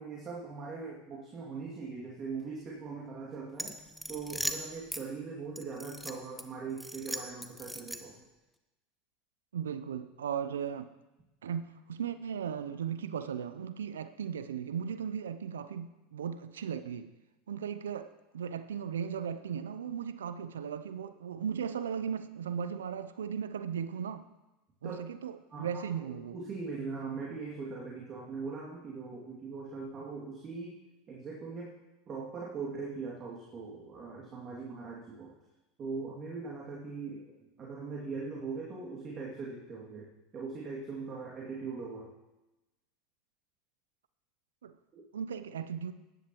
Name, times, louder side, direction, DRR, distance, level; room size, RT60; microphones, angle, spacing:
voice 1, 0.0-3.8 4.1-8.1 24.8-25.0 25.5-25.7 25.9-30.7 31.1-31.7 32.1-35.3 35.8-42.1 44.9-45.0, right 4 dB, 35° right, -4 dB, 2.4 m, -41 dB
sound 1, 3.5-5.0 5.6-6.4 6.8-8.2, equal, ahead, 0.9 m, -39 dB
voice 2, 9.5-10.9 11.4-17.1 17.5-18.1 18.3-24.3 24.8-26.3 44.6-44.7 45.1-45.9, right 8 dB, 85° right, 12 dB, 0.5 m, -37 dB
15.5 x 10.5 x 3.0 m, 1.0 s
hypercardioid pair, 85°, 0 cm